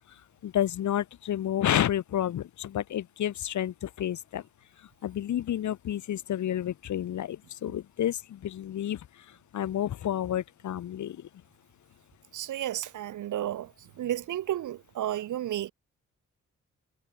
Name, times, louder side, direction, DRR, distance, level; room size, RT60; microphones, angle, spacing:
voice 1, 0.4-4.4 5.0-11.3, left 11 dB, 70° left, 0.7 m, -30 dB
voice 2, 12.3-13.7 14.0-15.7, right 12 dB, 75° right, 0.6 m, -32 dB
cardioid pair, 60°, 31 cm